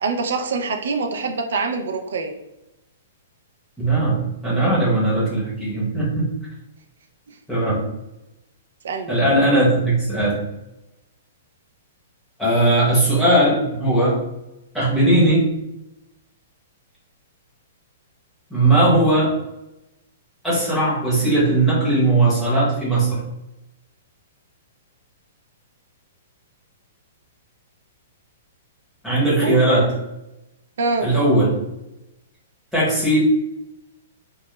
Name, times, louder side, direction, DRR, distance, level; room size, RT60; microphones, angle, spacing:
voice 1, 0.0-2.3 8.8-9.1 29.4-29.7 30.8-31.1, right 3 dB, 70° right, 4 dB, 0.4 m, -24 dB
voice 2, 3.8-6.3 7.5-7.8 9.1-10.4 12.4-14.2 14.7-15.5 18.5-19.4 20.4-23.2 29.0-29.9 31.0-31.6 32.7-33.2, right 2 dB, ahead, -10 dB, 0.8 m, -18 dB
2.2 x 2.1 x 2.9 m, 0.92 s
hypercardioid pair, 175°, 0 cm